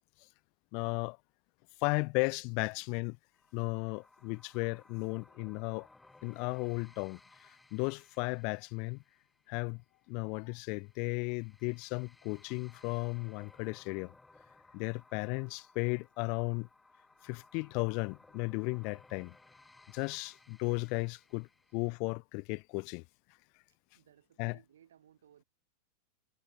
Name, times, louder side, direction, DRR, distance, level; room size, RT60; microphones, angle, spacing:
voice 1, 0.7-1.2 1.8-3.2 3.5-5.9 6.2-9.0 9.5-9.8 10.1-14.1 14.7-16.7 17.2-19.3 19.9-23.0 24.4-24.6, left 33 dB, 45° left, 0.5 m, -35 dB
sound 1, 3.3-22.0, left 2 dB, 10° left, 2.9 m, -62 dB
voice 2, 23.9-25.4, right 10 dB, 65° right, 1.8 m, -63 dB
figure-of-eight pair, 90°, 0 cm